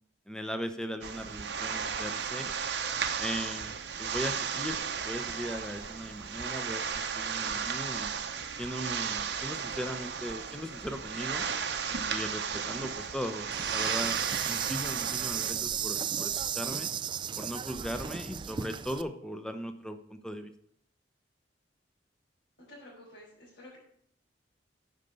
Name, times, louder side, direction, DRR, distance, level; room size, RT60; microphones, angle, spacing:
voice 1, 0.3-2.5 3.2-3.7 4.0-8.1 8.6-11.5 12.1-14.2 14.4-16.9 17.4-20.5, equal, 5° left, 8 dB, 0.8 m, -38 dB
sound 1, 1.0-15.5, right 6 dB, 70° right, 0.8 m, -34 dB
Insect, 13.5-19.0, right 8 dB, 25° right, 0.3 m, -34 dB
voice 2, 22.7-23.8, left 1 dB, 65° left, -10 dB, 5.0 m, -50 dB
9.1 x 5.2 x 6.9 m, 0.66 s
head